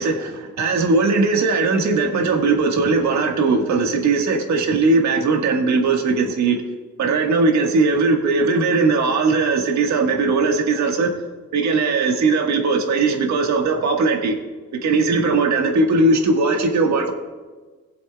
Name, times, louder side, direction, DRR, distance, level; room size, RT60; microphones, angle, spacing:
voice 1, 0.0-6.6 7.0-11.1 11.5-14.3 14.8-17.1, right 3 dB, 65° right, 3 dB, 1.6 m, -19 dB
22.5 x 7.7 x 2.3 m, 1.3 s
cardioid pair, 90°, 30 cm